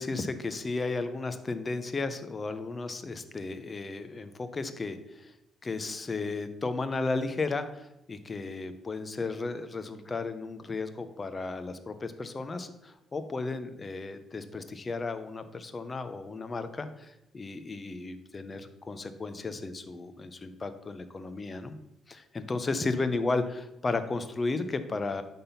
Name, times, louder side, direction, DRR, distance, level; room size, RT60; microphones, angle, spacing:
voice 1, 0.0-5.3 5.6-21.8 22.1-25.2, left 3 dB, 30° left, 10 dB, 0.9 m, -34 dB
11.0 x 3.7 x 5.8 m, 0.93 s
cardioid pair, 90°, 0 cm